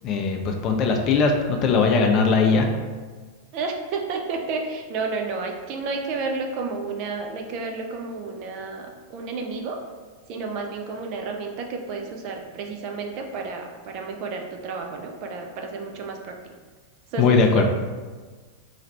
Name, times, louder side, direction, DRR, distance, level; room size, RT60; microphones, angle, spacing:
voice 1, 0.0-2.7 17.2-17.7, left 4 dB, 35° left, 3 dB, 0.5 m, -20 dB
voice 2, 3.5-9.8 10.3-16.4 17.1-17.7, right 4 dB, 40° right, 2 dB, 0.5 m, -31 dB
3.3 x 2.4 x 4.1 m, 1.4 s
figure-of-eight pair, 90°, 0 cm